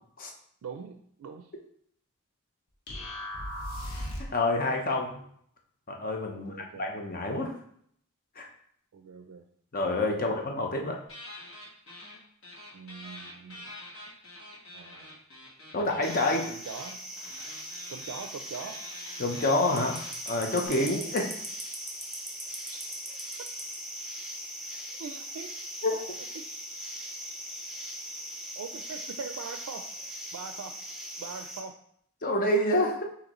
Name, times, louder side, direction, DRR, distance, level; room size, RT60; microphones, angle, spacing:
voice 1, 0.6-1.5 6.3-6.9 8.9-9.4 10.1-10.3 12.7-13.7 14.7-15.1 16.3-17.0 17.9-18.8 22.7-22.8 25.0-25.5 25.9-26.2 28.6-29.9 30.3-30.7 31.2-31.7, right 5 dB, 85° right, 6 dB, 0.4 m, -42 dB
sound 1, 2.9-4.4, equal, 90° left, 1.0 m, -36 dB
voice 2, 4.2-5.2 5.9-7.5 8.4-8.5 9.7-11.0 15.7-16.5 19.2-20.0 20.3-21.3 25.8-25.9 32.2-33.0, left 2 dB, 40° left, 2 dB, 0.7 m, -28 dB
sound 2, 11.1-12.2 12.4-20.7, left 1 dB, 60° left, 1.4 m, -46 dB
sound 3, 16.0-31.6, equal, ahead, 0.6 m, -40 dB
6.3 x 2.8 x 3.0 m, 0.66 s
head